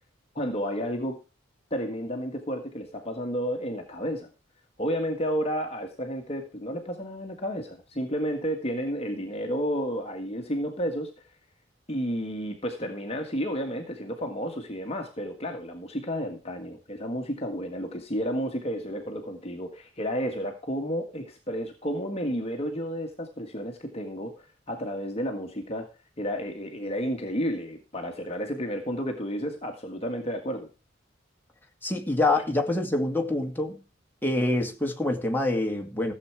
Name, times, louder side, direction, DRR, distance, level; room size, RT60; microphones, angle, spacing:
voice 1, 0.4-1.2 1.7-4.3 4.8-11.1 11.9-25.9 26.2-30.7, equal, 30° left, 3 dB, 1.7 m, -31 dB
voice 2, 31.8-33.8 34.2-36.1, left 2 dB, 10° left, 1 dB, 2.4 m, -26 dB
15.5 x 7.9 x 4.7 m, 0.32 s
head